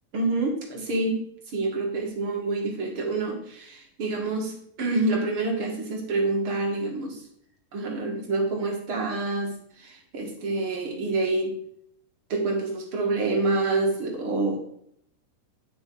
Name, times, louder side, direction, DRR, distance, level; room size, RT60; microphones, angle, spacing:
voice 1, 0.1-1.2 1.5-7.2 7.7-9.5 9.8-11.5 12.3-14.6, right 3 dB, 50° right, 1 dB, 2.2 m, -27 dB
9.9 x 6.8 x 4.7 m, 0.69 s
omnidirectional pair, 3.7 m